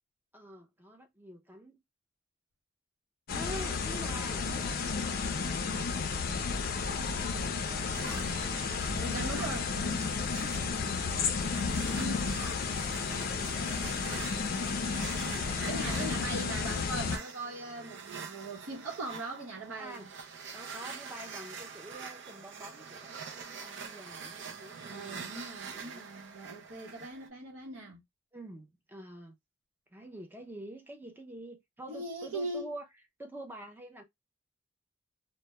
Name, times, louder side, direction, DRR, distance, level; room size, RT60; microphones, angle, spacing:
voice 1, 0.3-1.8 3.3-5.0 5.3-5.9 10.6-11.4 13.9-14.5 15.2-16.3 19.8-20.1 20.5-25.3 25.7-26.1 28.3-29.3 29.9-32.9 33.2-34.0, right 1 dB, 10° right, 0.5 m, -47 dB
sound 1, 3.3-17.2, left 5 dB, 50° left, 0.4 m, -32 dB
voice 2, 7.2-8.4 8.7-9.7 12.0-12.3 15.7-20.1 24.9-28.0 31.9-32.7, right 2 dB, 80° right, 0.8 m, -41 dB
sound 2, 7.9-27.3, right 6 dB, 65° right, 0.5 m, -45 dB
2.2 x 2.1 x 2.9 m
head